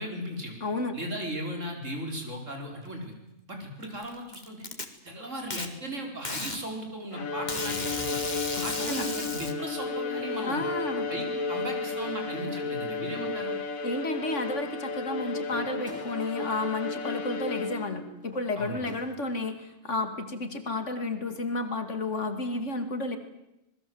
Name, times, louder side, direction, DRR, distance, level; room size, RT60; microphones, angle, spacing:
voice 1, 0.0-0.6 0.9-3.1 3.5-4.7 5.0-8.2 8.6-10.6 11.1-13.6 18.6-18.9, right 1 dB, 65° right, 2 dB, 5.0 m, -37 dB
voice 2, 0.6-0.9 8.6-9.1 10.4-11.1 13.8-23.2, left 2 dB, 65° left, 8 dB, 2.7 m, -32 dB
Packing tape duct tape, 3.8-4.9 5.5-5.7 6.3-6.6 7.5-9.5, left 3 dB, 35° left, 2.1 m, -34 dB
Bowed string instrument, 7.1-18.1, left 4 dB, 90° left, 2.2 m, -33 dB
sound 1, 15.4-19.5, equal, 5° right, 5.7 m, -51 dB
26.5 x 20.5 x 7.9 m, 0.89 s
omnidirectional pair, 1.4 m